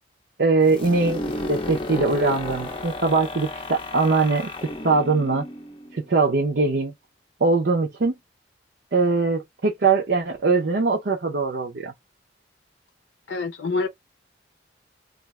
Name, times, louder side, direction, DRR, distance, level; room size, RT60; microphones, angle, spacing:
voice 1, 0.4-4.5 4.8-5.5 5.9-6.9 7.4-8.2 8.9-11.9, right 3 dB, 60° right, 0.6 m, -21 dB
sound 1, 0.6-6.3, left 2 dB, 30° left, 0.6 m, -33 dB
voice 2, 13.3-13.9, left 3 dB, 75° left, 0.6 m, -26 dB
2.4 x 2.3 x 3.1 m
head